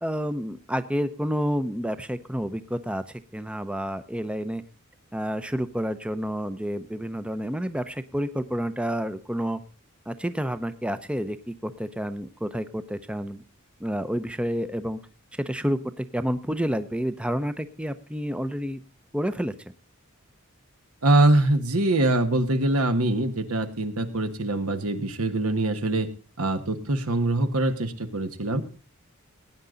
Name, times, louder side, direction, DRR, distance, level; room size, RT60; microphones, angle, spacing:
voice 1, 0.0-4.6 5.1-9.6 10.1-13.4 13.8-15.0 15.3-18.8 19.1-19.5, equal, 5° right, 11 dB, 0.6 m, -29 dB
voice 2, 21.0-26.1 26.4-28.6, right 2 dB, 80° right, 8 dB, 1.5 m, -23 dB
18.5 x 9.6 x 3.8 m, 0.35 s
head